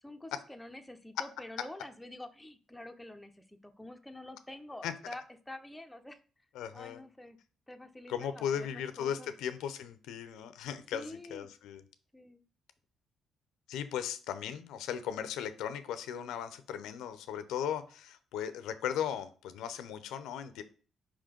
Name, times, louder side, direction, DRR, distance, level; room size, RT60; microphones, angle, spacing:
voice 1, 0.0-6.2 6.7-7.4 7.7-8.7 9.0-9.3 10.9-11.5 12.1-12.4, left 1 dB, 10° left, 6 dB, 0.8 m, -47 dB
voice 2, 6.5-7.0 8.1-11.8 13.7-20.6, left 9 dB, 90° left, 11 dB, 0.6 m, -37 dB
5.0 x 3.8 x 5.1 m, 0.39 s
cardioid pair, 90°, 0 cm